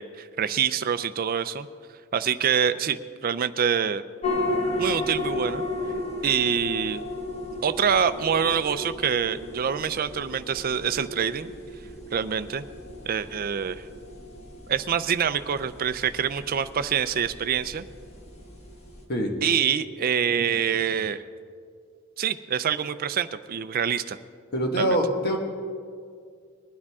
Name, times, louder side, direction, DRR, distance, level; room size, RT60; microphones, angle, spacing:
voice 1, 0.0-1.7 2.1-4.0 4.8-5.6 6.2-7.0 7.6-11.5 12.1-12.6 13.1-13.8 14.7-17.8 19.4-21.2 22.2-24.2 24.8-25.0, right 7 dB, 45° right, 12 dB, 0.4 m, -26 dB
sound 1, 4.2-19.0, left 1 dB, 30° left, 1.7 m, -34 dB
voice 2, 19.1-19.4 24.5-25.4, equal, 50° left, 2 dB, 1.6 m, -24 dB
20.5 x 9.9 x 3.6 m, 2.1 s
head